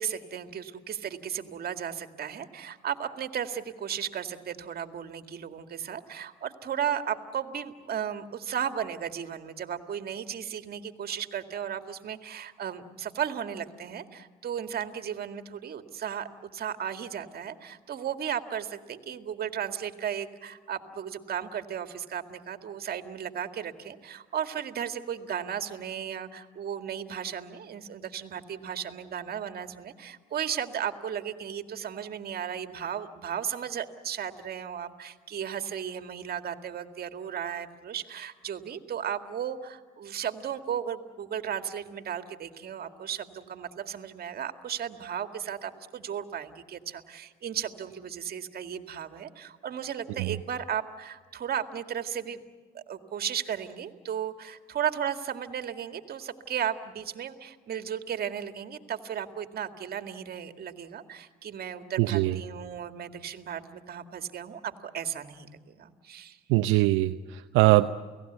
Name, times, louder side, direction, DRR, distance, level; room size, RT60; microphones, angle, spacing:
voice 1, 0.0-52.4 52.7-66.4, right 8 dB, 50° right, 8 dB, 2.1 m, -35 dB
voice 2, 62.0-62.4 66.5-67.9, right 18 dB, 80° right, 7 dB, 0.8 m, -22 dB
29.5 x 18.0 x 8.1 m, 1.5 s
supercardioid pair, 70°, 20 cm